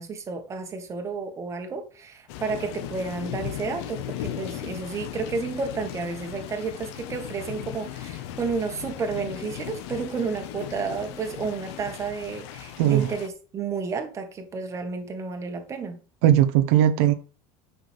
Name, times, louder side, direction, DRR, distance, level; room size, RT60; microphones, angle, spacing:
voice 1, 0.0-16.0, right 4 dB, 20° right, 1.6 m, -31 dB
sound 1, 2.3-13.3, left 12 dB, 80° left, 1.3 m, -37 dB
voice 2, 12.8-13.1 16.2-17.1, right 11 dB, 70° right, 0.9 m, -18 dB
9.8 x 6.1 x 3.5 m
cardioid pair, 160°, 14 cm